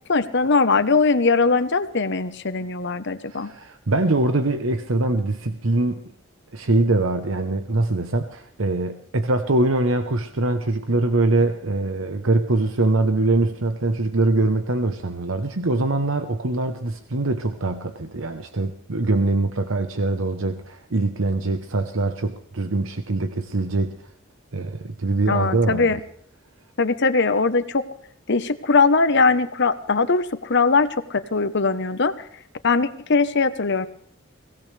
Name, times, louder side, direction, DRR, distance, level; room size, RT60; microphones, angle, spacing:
voice 1, 0.1-3.5 25.3-26.0 26.8-27.8 28.3-32.1 32.6-33.9, left 4 dB, 60° left, 11 dB, 1.2 m, -20 dB
voice 2, 3.3-6.0 6.5-23.9 24.5-26.0, right 2 dB, 75° right, 8 dB, 1.1 m, -23 dB
23.0 x 17.5 x 3.5 m, 0.64 s
head